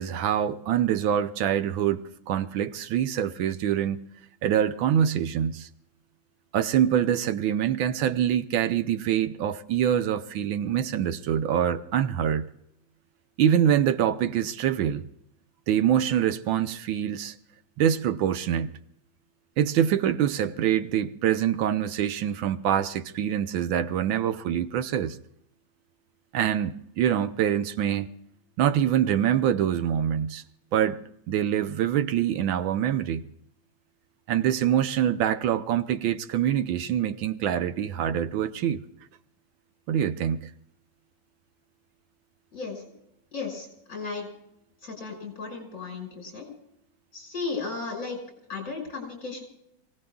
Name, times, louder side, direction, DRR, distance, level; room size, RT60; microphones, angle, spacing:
voice 1, 0.0-4.1 4.4-5.7 6.5-12.5 13.4-15.1 15.7-17.3 17.8-18.7 19.6-25.2 26.3-28.1 28.6-30.4 30.7-31.0 31.3-33.2 34.3-38.8 39.9-40.5, right 10 dB, 85° right, 1.6 m, -25 dB
voice 2, 42.5-42.8 43.3-44.3 44.8-46.5 47.1-48.2 48.5-49.4, left 4 dB, 45° left, 5.9 m, -35 dB
27.5 x 17.5 x 2.3 m
omnidirectional pair, 2.1 m